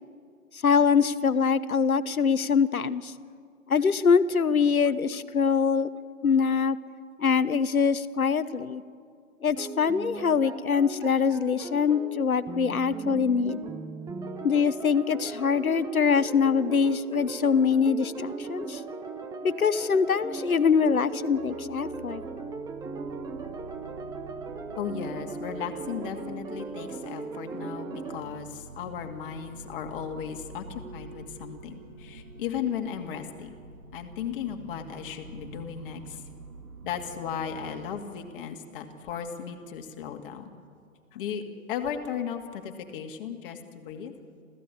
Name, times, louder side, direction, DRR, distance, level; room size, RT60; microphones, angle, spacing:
voice 1, 0.5-3.1 3.7-5.9 6.2-6.8 7.2-8.8 9.4-13.6 14.4-18.8 19.4-22.2, left 6 dB, 85° left, 15 dB, 1.0 m, -24 dB
sound 1, 9.6-28.2, right 4 dB, 10° right, 0.9 m, -38 dB
sound 2, 21.3-38.0, right 4 dB, 75° right, 1.9 m, -47 dB
voice 2, 24.8-33.5 33.9-36.2 36.8-40.5 41.1-44.1, left 8 dB, 40° left, 5 dB, 2.3 m, -36 dB
27.5 x 15.5 x 8.5 m, 2.2 s
figure-of-eight pair, 125°, 42 cm